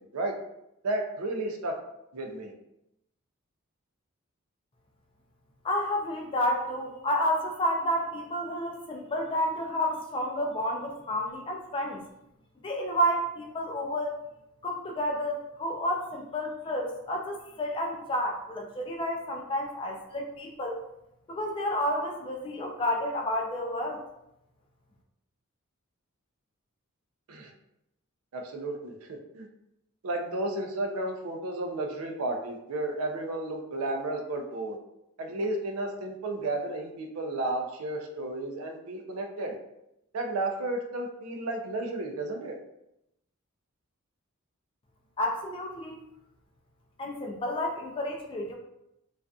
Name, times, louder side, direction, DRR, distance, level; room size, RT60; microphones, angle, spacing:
voice 1, 0.8-1.8 2.1-2.5 27.3-27.5 28.3-29.1 29.3-29.5 30.0-34.8 35.2-39.5 40.1-42.6, right 2 dB, 75° right, 3 dB, 0.4 m, -32 dB
voice 2, 5.6-12.0 12.6-14.2 14.6-20.8 21.3-24.0 45.2-46.0 47.0-48.5, equal, 25° left, 1 dB, 0.3 m, -30 dB
2.5 x 2.3 x 2.3 m, 0.84 s
head